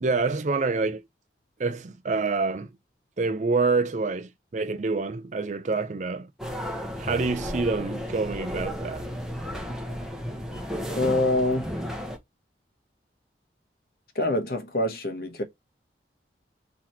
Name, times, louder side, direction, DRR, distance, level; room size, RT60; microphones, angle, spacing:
voice 1, 0.0-1.0 1.6-2.7 3.2-6.3 7.0-9.1, right 3 dB, 40° right, 0.5 m, -27 dB
sound 1, 6.4-12.2, equal, 5° right, 0.9 m, -33 dB
voice 2, 10.9-11.7 14.1-15.4, left 2 dB, 55° left, 1.1 m, -25 dB
3.9 x 2.9 x 4.3 m
head